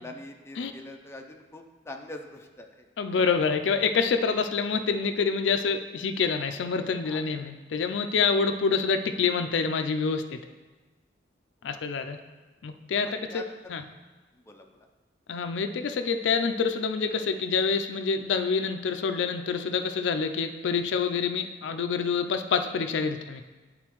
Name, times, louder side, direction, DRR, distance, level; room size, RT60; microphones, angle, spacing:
voice 1, 0.0-2.9 7.0-7.3 11.7-11.9 13.0-13.6 14.5-14.9, left 2 dB, 15° left, 3 dB, 0.5 m, -44 dB
voice 2, 3.0-10.4 11.6-12.2 12.6-13.4 13.7-13.8 15.3-23.4, left 5 dB, 90° left, 8 dB, 0.4 m, -27 dB
10.5 x 3.8 x 3.0 m, 1.2 s
head